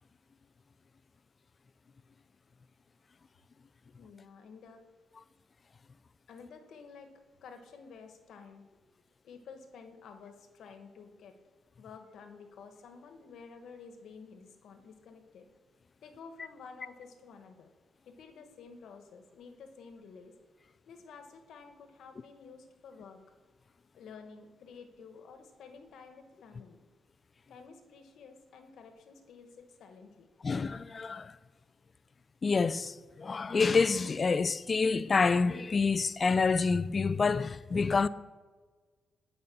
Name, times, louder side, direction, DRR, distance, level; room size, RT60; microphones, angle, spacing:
voice 1, 4.0-4.8 6.3-8.8 9.2-11.4 11.8-15.5 16.0-17.7 18.0-20.3 20.9-23.2 23.9-26.8 27.5-30.3, left 5 dB, 70° left, 1.2 m, -51 dB
voice 2, 30.4-31.3 32.4-38.1, left 4 dB, 30° left, 0.3 m, -27 dB
9.4 x 5.4 x 7.2 m
cardioid pair, 115°, 0 cm